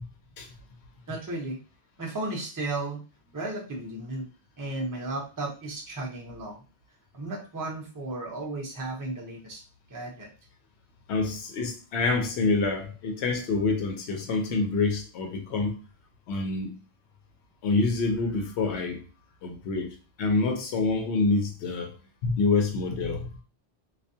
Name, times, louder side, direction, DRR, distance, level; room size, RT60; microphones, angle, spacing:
voice 1, 1.1-1.6 2.0-3.0 3.3-4.3 4.6-6.6 7.1-9.6 9.9-10.3, right 2 dB, 20° right, 0.6 m, -34 dB
voice 2, 11.1-15.8 16.3-16.7 17.6-19.0 19.4-21.9 22.2-23.3, left 3 dB, 85° left, 0.9 m, -27 dB
2.4 x 2.2 x 2.6 m
omnidirectional pair, 1.1 m